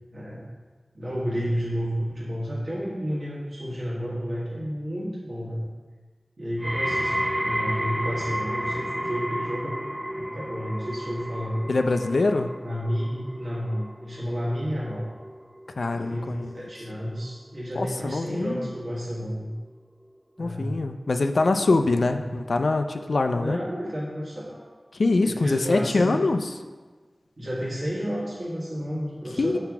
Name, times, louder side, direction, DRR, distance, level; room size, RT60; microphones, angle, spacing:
voice 1, 0.1-0.5 0.9-5.7 6.4-9.8 10.1-11.7 12.6-15.1 15.9-16.3 16.5-19.5 20.4-20.7 21.4-21.6 22.0-22.3 23.4-24.6 25.2-26.2 27.4-29.6, equal, 70° right, -6 dB, 1.5 m, -31 dB
sound 1, 6.6-17.7 18.0-18.6 19.3-19.4, equal, 5° right, 0.3 m, -32 dB
voice 2, 11.7-12.5 15.8-16.5 17.8-18.7 20.4-23.6 25.0-26.4 29.4-29.6, left 3 dB, 85° left, 7 dB, 0.4 m, -24 dB
5.8 x 4.5 x 6.0 m, 1.4 s
wide cardioid pair, 60°, 0 cm